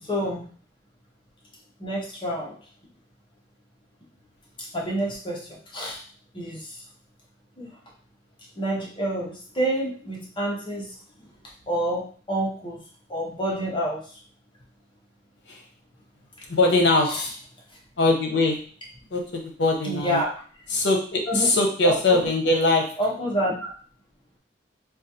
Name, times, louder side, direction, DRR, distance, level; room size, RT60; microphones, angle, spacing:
voice 1, 0.0-0.5 1.8-2.6 4.6-6.0 6.3-6.8 7.6-7.8 8.6-10.9 11.7-12.8 13.1-14.2 17.1-17.2 19.8-20.3 21.3-21.6 21.8-22.3 23.0-23.7, right 1 dB, 30° left, -3 dB, 0.8 m, -28 dB
voice 2, 16.5-17.3 18.0-18.6 19.1-20.2 20.7-22.9, left 2 dB, 75° left, 2 dB, 0.8 m, -21 dB
3.9 x 2.4 x 2.7 m, 0.43 s
head